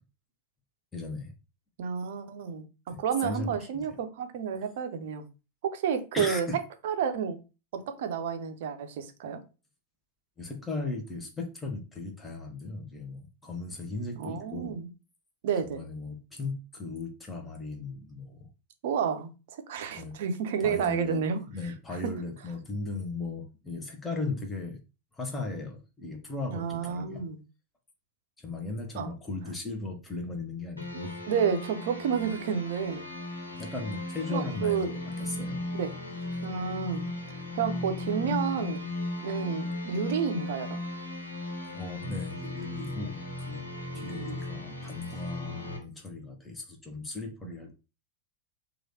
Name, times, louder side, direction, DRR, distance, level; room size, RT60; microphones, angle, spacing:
voice 1, 0.9-1.3 2.9-3.9 6.1-6.6 10.4-14.8 15.6-18.5 19.9-20.1 20.6-21.2 21.5-24.8 25.1-27.2 28.4-31.2 33.5-35.6 41.7-43.2 43.5-43.6 43.9-47.7, left 3 dB, 10° left, 1 dB, 0.9 m, -37 dB
voice 2, 1.8-5.2 5.6-6.5 6.8-7.4 7.7-9.4 14.1-14.9 15.4-15.8 18.8-21.7 22.0-22.1 26.5-27.4 28.9-29.1 31.3-33.1 34.3-34.9 35.7-36.0 36.4-37.0 37.3-38.8 39.2-40.8 43.9-44.3, right 7 dB, 55° right, 8 dB, 0.6 m, -31 dB
sound 1, 30.8-45.8, left 2 dB, 85° left, 1.2 m, -36 dB
3.0 x 2.5 x 2.7 m, 0.31 s
figure-of-eight pair, 90°, 0 cm